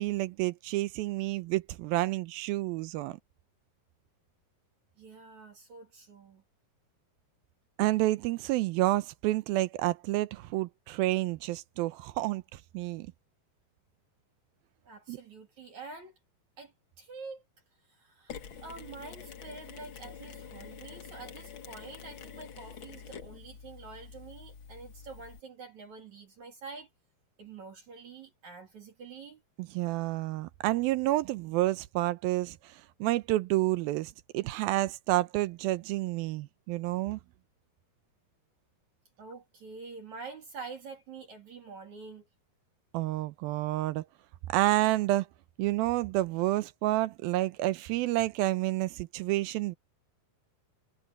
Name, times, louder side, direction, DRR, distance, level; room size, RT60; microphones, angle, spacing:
voice 1, 0.0-3.2 7.8-13.1 15.1-15.2 29.6-32.7 33.0-37.2 42.9-44.1 44.5-45.3 45.6-49.8, right 17 dB, 80° right, 2.4 m, -29 dB
voice 2, 5.0-6.4 14.8-16.2 16.6-16.7 17.0-17.4 17.9-26.9 27.4-29.4 39.2-42.3, right 4 dB, 50° right, 4.0 m, -47 dB
Mechanisms, 18.3-25.4, left 7 dB, 60° left, 1.2 m, -47 dB
omnidirectional pair, 4.5 m